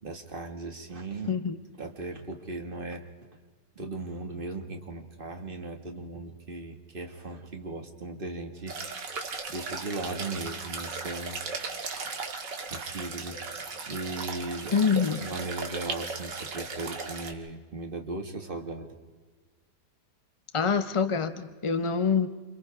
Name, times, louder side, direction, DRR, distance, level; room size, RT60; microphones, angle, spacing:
voice 1, 0.0-1.4 1.8-3.1 3.8-8.8 9.5-11.4 12.7-14.8 15.2-19.0, right 2 dB, 30° right, 4 dB, 2.1 m, -37 dB
sound 1, 8.7-17.3, right 4 dB, 80° right, 2.5 m, -36 dB
voice 2, 14.7-15.3 20.5-22.3, left 6 dB, 45° left, 10 dB, 0.4 m, -25 dB
30.0 x 27.5 x 3.6 m, 1.4 s
omnidirectional pair, 1.9 m